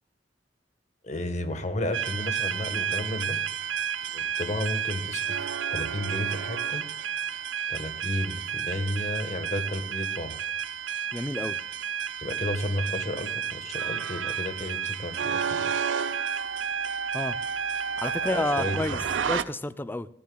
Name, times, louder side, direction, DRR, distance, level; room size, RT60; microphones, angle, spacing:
voice 1, 1.0-3.4 4.1-5.4 5.7-6.9 7.7-10.4 12.2-15.7 18.0-19.0, left 1 dB, 40° left, 1.4 m, -32 dB
sound 1, 1.9-19.4, right 8 dB, 90° right, 0.6 m, -31 dB
voice 2, 11.1-11.6 17.1-17.4 18.0-19.0 19.3-20.1, left 1 dB, 10° left, 0.4 m, -30 dB
Wind instrument woodwind instrument, 15.3-19.1, right 4 dB, 70° right, 1.1 m, -34 dB
14.5 x 14.5 x 2.3 m
head